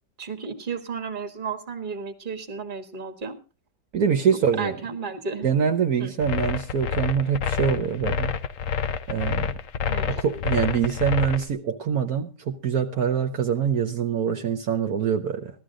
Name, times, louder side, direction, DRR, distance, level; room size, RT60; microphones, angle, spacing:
voice 1, 0.2-3.4 4.6-5.5 6.0-6.1 9.8-10.2, right 5 dB, 30° right, 7 dB, 1.6 m, -33 dB
voice 2, 3.9-4.8 5.4-8.3 9.1-9.5 10.1-15.5, right 7 dB, 65° right, 6 dB, 1.4 m, -24 dB
sound 1, 6.2-11.4, left 7 dB, 60° left, 1.1 m, -27 dB
15.5 x 13.0 x 3.8 m, 0.31 s
omnidirectional pair, 1.8 m